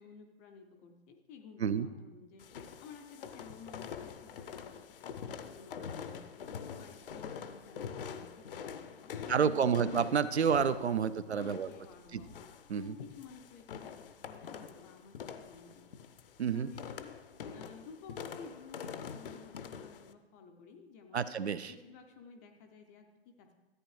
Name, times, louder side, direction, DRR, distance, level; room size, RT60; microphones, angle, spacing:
voice 1, 0.0-2.4 2.8-4.8 5.1-6.2 6.6-10.3 11.0-12.3 12.7-15.9 16.5-17.1 17.5-21.3 21.7-23.5, left 5 dB, 15° left, 5 dB, 0.4 m, -53 dB
sound 1, 2.4-20.1, left 7 dB, 55° left, 0.6 m, -45 dB
voice 2, 9.3-11.7 12.1-12.2 12.7-13.0 16.4-16.7 21.1-21.7, right 7 dB, 85° right, 14 dB, 0.5 m, -29 dB
13.5 x 9.1 x 3.2 m, 1.1 s
figure-of-eight pair, 125°, 32 cm